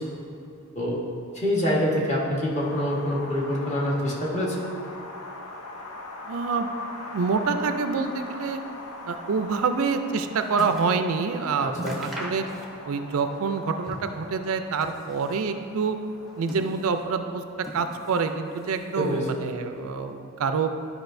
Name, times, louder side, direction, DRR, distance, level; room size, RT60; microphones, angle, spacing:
voice 1, 1.3-4.6 11.8-12.0 19.0-19.2, equal, 30° left, -5 dB, 1.3 m, -25 dB
Wind, 2.5-16.6, left 2 dB, 75° left, 0.7 m, -42 dB
voice 2, 6.3-6.7 7.1-8.6 9.1-12.4 12.8-16.0 16.4-17.4 17.7-20.7, right 5 dB, 65° right, 8 dB, 0.4 m, -27 dB
sound 1, 9.8-11.0 11.3-11.4 11.7-13.0 13.3-14.2 14.6-15.5 16.1-17.1 17.6-18.3 18.6-19.4 20.0-20.1, right 1 dB, ahead, 0.6 m, -40 dB
11.5 x 4.8 x 2.6 m, 2.6 s
head